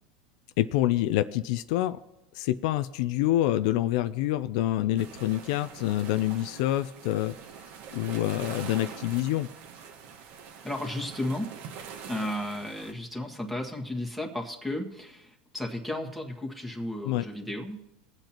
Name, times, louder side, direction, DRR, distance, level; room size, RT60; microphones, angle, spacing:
voice 1, 0.6-2.0 2.3-7.4 7.9-9.5 17.0-17.3, left 14 dB, 65° left, 12 dB, 0.4 m, -27 dB
sound 1, 5.0-12.9, right 7 dB, 55° right, 1.3 m, -44 dB
voice 2, 10.6-11.5 12.1-17.8, left 1 dB, ahead, 1 dB, 1.7 m, -34 dB
22.5 x 7.9 x 3.0 m, 0.95 s
supercardioid pair, 130°, 4 cm